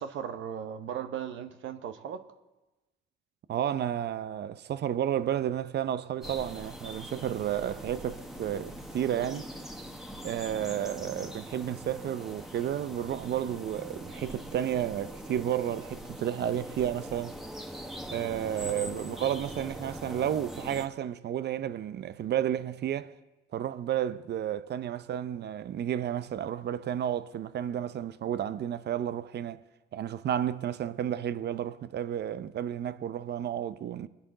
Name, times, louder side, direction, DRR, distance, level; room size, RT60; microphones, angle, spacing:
voice 1, 0.0-2.2 18.7-18.9, right 8 dB, 80° right, 0.9 m, -37 dB
voice 2, 3.5-9.5 10.2-17.4 18.1-23.1 23.5-29.6 29.9-34.1, right 10 dB, 60° right, 0.6 m, -32 dB
sound 1, 6.2-20.9, equal, ahead, 1.2 m, -42 dB
23.5 x 10.0 x 3.8 m
cardioid pair, 90°, 20 cm